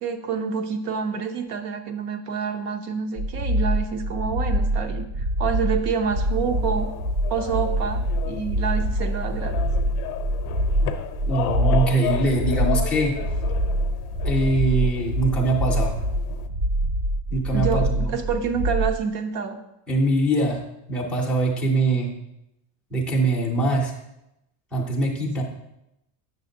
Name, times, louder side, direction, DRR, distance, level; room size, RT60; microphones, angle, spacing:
voice 1, 0.0-6.9 7.3-9.6 17.5-19.6, right 6 dB, 70° right, 7 dB, 0.9 m, -27 dB
sound 1, 3.2-19.0, right 1 dB, 85° right, 1.7 m, -25 dB
sound 2, 6.1-16.5, left 11 dB, 55° left, 0.5 m, -34 dB
voice 2, 11.3-13.1 14.2-16.0 17.3-18.1 19.9-20.6 20.9-22.1 22.9-23.9 24.7-25.4, right 2 dB, 5° left, -5 dB, 0.3 m, -23 dB
8.5 x 6.4 x 2.7 m, 0.86 s
cardioid pair, 175°, 49 cm